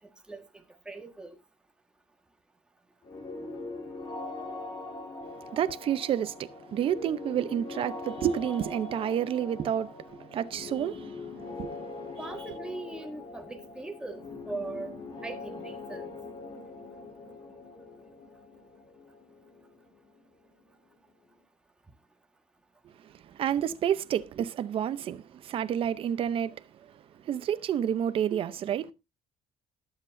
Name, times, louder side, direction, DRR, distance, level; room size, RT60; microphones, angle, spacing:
voice 1, 0.8-1.3 12.2-14.2 14.5-14.9 15.2-16.1, right 3 dB, 5° right, 1.5 m, -39 dB
sound 1, 3.0-20.7, left 3 dB, 35° left, 3.5 m, -42 dB
voice 2, 5.5-11.2 11.6-12.1 23.3-26.6 27.2-28.9, right 9 dB, 40° right, 0.7 m, -30 dB
20.5 x 7.7 x 2.6 m
cardioid pair, 175°, 14 cm